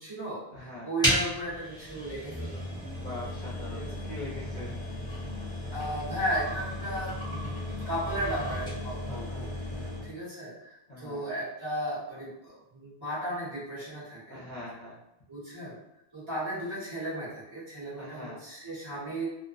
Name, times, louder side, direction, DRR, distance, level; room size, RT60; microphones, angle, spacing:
voice 1, 0.0-3.0 3.7-4.1 5.7-9.5 9.7-14.4 15.3-15.8 16.1-19.3, right 1 dB, 30° right, -11 dB, 1.0 m, -35 dB
voice 2, 0.5-0.9 3.0-4.8 9.1-10.0 10.9-11.2 14.3-15.0 18.0-18.4, left 2 dB, 50° left, -8 dB, 0.7 m, -42 dB
sound 1, 1.0-10.1, left 1 dB, 5° left, 0.7 m, -34 dB
2.4 x 2.1 x 2.4 m, 0.88 s
omnidirectional pair, 1.1 m